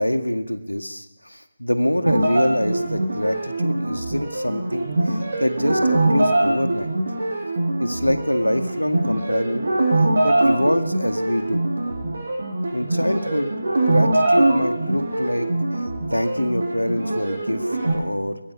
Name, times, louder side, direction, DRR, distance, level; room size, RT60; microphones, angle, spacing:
voice 1, 0.0-6.9 7.8-9.7 10.2-11.6 12.7-13.5 13.9-15.5 15.7-15.8 16.1-18.4, left 1 dB, 85° left, 8 dB, 1.9 m, -25 dB
sound 1, 2.1-17.9, right 2 dB, 60° right, 6.8 m, -23 dB
23.0 x 20.5 x 6.1 m, 0.87 s
figure-of-eight pair, 150°, 0 cm